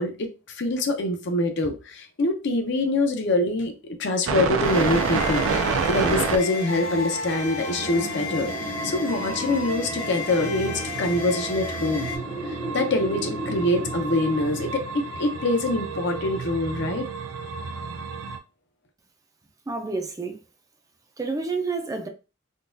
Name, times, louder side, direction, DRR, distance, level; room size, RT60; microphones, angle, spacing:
voice 1, 0.0-12.1 12.5-17.1, left 2 dB, 60° left, 0.6 m, -25 dB
sound 1, 4.3-18.4, right 5 dB, 85° right, 0.5 m, -30 dB
sound 2, 4.6-12.2, left 3 dB, 85° left, 0.9 m, -34 dB
Wind, 7.8-16.5, equal, 35° left, 0.8 m, -36 dB
voice 2, 19.7-20.4 21.2-22.1, right 4 dB, 15° right, 0.4 m, -29 dB
3.7 x 2.3 x 2.6 m
head